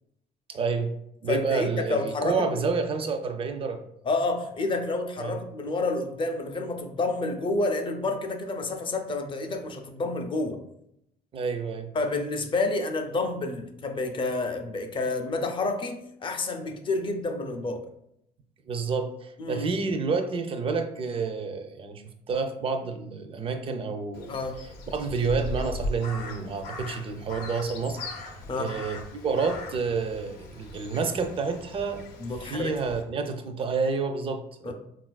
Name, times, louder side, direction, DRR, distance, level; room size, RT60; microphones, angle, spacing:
voice 1, 0.5-0.9 1.2-3.8 5.2-5.4 11.3-11.9 18.7-22.0 22.3-24.3 24.9-28.3 28.5-32.1 32.4-34.7, right 4 dB, 35° right, 7 dB, 0.4 m, -29 dB
voice 2, 1.3-2.8 4.0-10.6 11.9-17.8 19.4-19.8 24.3-24.6 28.5-28.8 32.2-32.7 34.6-34.7, left 3 dB, 30° left, 6 dB, 0.4 m, -29 dB
Crow, 24.1-33.0, left 1 dB, 80° left, 0.6 m, -39 dB
3.9 x 2.4 x 2.2 m, 0.78 s
cardioid pair, 110°, 17 cm